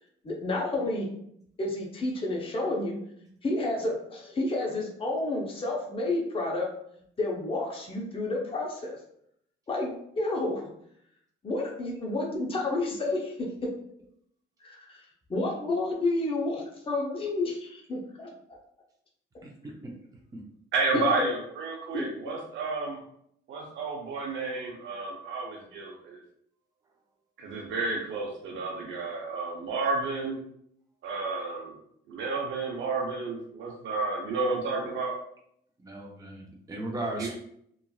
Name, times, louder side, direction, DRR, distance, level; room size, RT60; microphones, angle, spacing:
voice 1, 0.2-1.1 1.6-3.0 3.4-6.7 7.2-9.0 9.7-10.7 11.4-13.7 14.6-15.0 15.3-18.3 20.9-21.3 21.9-22.1, left 2 dB, 25° left, -2 dB, 0.7 m, -30 dB
voice 2, 19.4-19.9 35.8-37.3, right 1 dB, 15° right, -1 dB, 0.6 m, -36 dB
voice 3, 20.7-23.0 23.5-26.2 27.4-30.4 31.0-31.8 32.1-35.1 37.2-37.3, right 3 dB, 75° right, -2 dB, 0.6 m, -31 dB
3.0 x 2.5 x 2.3 m, 0.71 s
cardioid pair, 90°, 20 cm